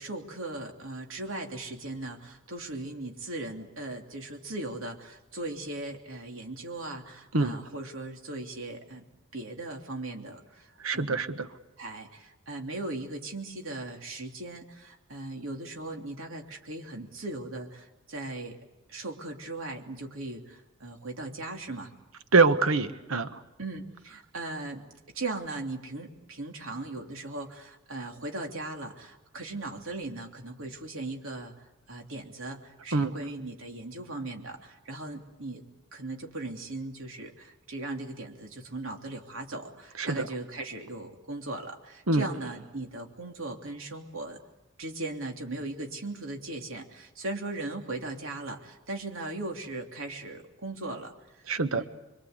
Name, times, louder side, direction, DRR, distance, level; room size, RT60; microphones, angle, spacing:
voice 1, 0.0-9.0 9.3-11.2 11.8-18.6 18.9-21.9 23.6-24.8 25.1-35.6 35.9-44.4 44.8-51.1 51.8-51.9, right 2 dB, 75° right, 2 dB, 3.2 m, -38 dB
voice 2, 10.8-11.5 22.3-23.3 32.9-33.1 40.0-40.3 42.1-42.2 51.5-51.8, right 3 dB, 90° right, 10 dB, 1.3 m, -24 dB
26.5 x 23.5 x 8.1 m, 1.0 s
head